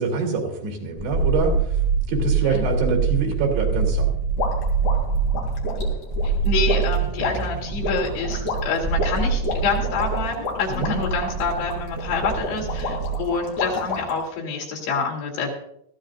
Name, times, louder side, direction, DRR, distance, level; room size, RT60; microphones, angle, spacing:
voice 1, 0.0-1.8 2.1-4.1 10.7-11.0, right 4 dB, 85° right, -1 dB, 5.3 m, -25 dB
sound 1, 1.0-13.4 13.6-13.7, right 5 dB, 15° right, 4.2 m, -25 dB
sound 2, 4.4-14.3, left 3 dB, 55° left, 4.3 m, -30 dB
voice 2, 6.4-15.5, left 4 dB, 85° left, -1 dB, 5.0 m, -27 dB
21.5 x 14.5 x 2.6 m, 0.71 s
omnidirectional pair, 4.7 m